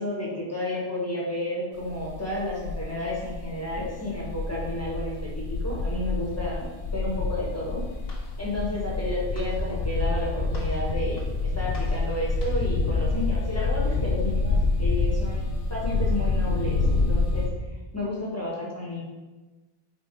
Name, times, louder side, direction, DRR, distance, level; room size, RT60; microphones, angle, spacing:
voice 1, 0.0-7.8 8.4-17.5 17.9-19.0, left 1 dB, 15° left, -5 dB, 1.5 m, -32 dB
sound 1, 1.8-17.5, left 3 dB, 60° left, 0.9 m, -27 dB
Walk footsteps, 7.7-12.8, left 2 dB, 85° left, 1.7 m, -48 dB
5.3 x 4.3 x 4.7 m, 1.2 s
omnidirectional pair, 1.0 m